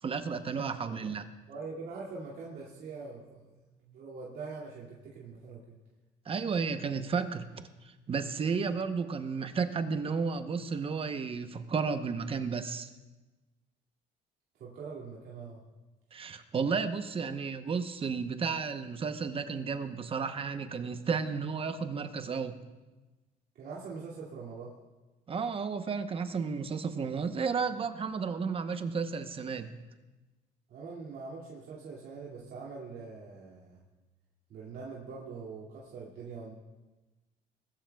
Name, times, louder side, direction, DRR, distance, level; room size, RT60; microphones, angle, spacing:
voice 1, 0.0-1.2 6.3-12.9 16.1-22.5 25.3-29.7, right 5 dB, 35° right, 9 dB, 0.9 m, -33 dB
voice 2, 1.5-5.8 14.6-15.6 17.2-17.3 23.5-24.8 30.7-33.8 34.5-36.5, right 4 dB, 70° right, -6 dB, 2.5 m, -43 dB
20.5 x 13.5 x 2.3 m, 1.2 s
cardioid pair, 110°, 17 cm